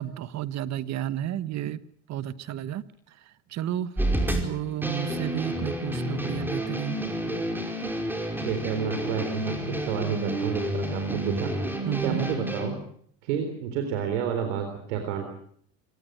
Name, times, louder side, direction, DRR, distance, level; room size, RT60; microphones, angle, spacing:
voice 1, 0.0-1.8 2.1-2.8 3.2-3.9 4.3-7.0 11.8-12.2, right 11 dB, 50° right, 15 dB, 1.3 m, -32 dB
sound 1, 4.0-12.7, right 1 dB, 5° right, 5.0 m, -30 dB
voice 2, 8.4-12.8 13.2-15.3, right 8 dB, 85° right, 6 dB, 3.9 m, -30 dB
25.5 x 19.0 x 7.9 m, 0.64 s
supercardioid pair, 105°, 36 cm